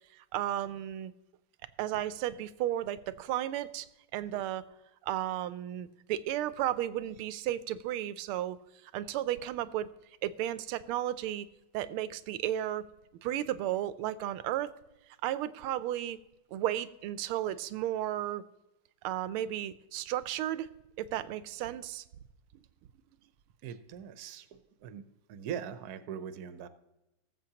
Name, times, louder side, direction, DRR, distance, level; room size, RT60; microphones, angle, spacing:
voice 1, 0.3-1.1 1.8-3.9 4.1-4.6 5.0-8.6 8.9-9.9 10.2-11.5 11.7-12.8 13.2-14.7 15.2-16.2 16.5-18.4 19.0-20.7 21.0-22.0, right 12 dB, 90° right, 14 dB, 1.5 m, -33 dB
voice 2, 23.6-26.7, right 8 dB, 60° right, 11 dB, 1.0 m, -41 dB
19.0 x 7.6 x 2.9 m, 0.95 s
omnidirectional pair, 2.3 m